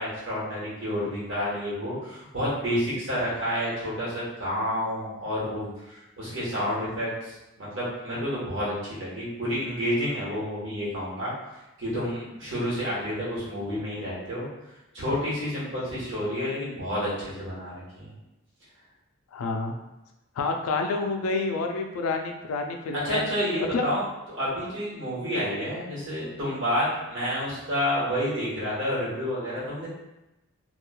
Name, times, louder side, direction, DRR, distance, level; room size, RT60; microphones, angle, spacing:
voice 1, 0.0-11.3 11.8-14.5 14.9-18.1 22.9-29.9, equal, 55° right, -8 dB, 1.1 m, -29 dB
voice 2, 19.3-19.8 20.4-23.2 23.7-23.8, left 3 dB, 80° left, 4 dB, 0.4 m, -28 dB
3.0 x 2.3 x 2.2 m, 0.97 s
head